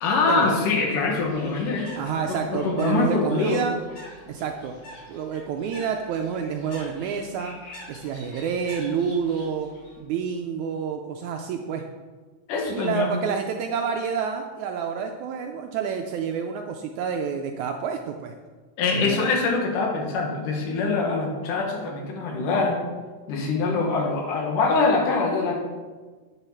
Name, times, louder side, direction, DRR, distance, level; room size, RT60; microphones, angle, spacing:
voice 1, 0.0-1.9 2.3-3.6 12.5-13.1 18.8-22.8 23.3-25.6, left 4 dB, 75° left, 1 dB, 3.0 m, -24 dB
Bird, 1.1-10.0, left 1 dB, 50° left, 4.4 m, -46 dB
voice 2, 2.0-3.7 4.3-4.8 5.1-7.6 7.9-9.7 10.0-11.8 12.7-18.3 18.9-19.3, right 6 dB, 80° right, 4 dB, 1.8 m, -28 dB
8.9 x 7.1 x 5.7 m, 1.4 s
omnidirectional pair, 3.9 m